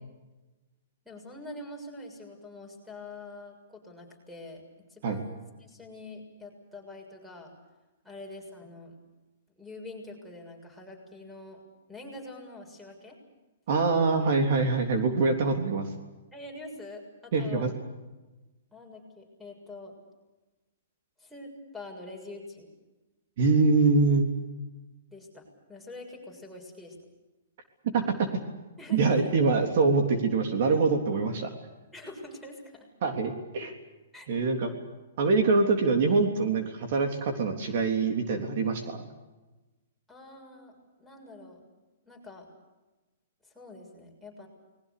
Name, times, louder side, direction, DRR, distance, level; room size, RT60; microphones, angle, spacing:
voice 1, 1.0-4.6 4.9-7.5 8.0-8.9 9.6-11.6 11.9-13.2 16.3-17.7 18.7-19.9 21.2-22.7 25.1-27.0 28.8-29.3 31.9-32.9 34.1-34.3 40.1-41.6 42.0-42.5 43.4-44.5, left 2 dB, ahead, 3 dB, 6.8 m, -45 dB
voice 2, 13.7-15.9 17.3-17.7 23.4-24.3 27.9-28.3 28.9-31.5 33.0-33.7 34.3-34.7 35.2-39.0, right 4 dB, 55° right, 5 dB, 3.6 m, -24 dB
29.5 x 21.5 x 6.8 m, 1.1 s
hypercardioid pair, 150°, 0 cm